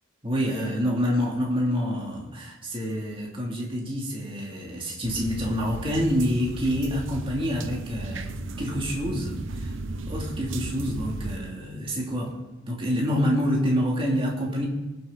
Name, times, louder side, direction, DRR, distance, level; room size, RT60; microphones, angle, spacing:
voice 1, 0.2-9.7 10.1-12.4 12.6-14.6, equal, 25° right, -3 dB, 2.8 m, -27 dB
sound 1, 5.0-11.4, right 2 dB, 60° right, 0.8 m, -35 dB
22.5 x 7.9 x 4.0 m, 1.2 s
head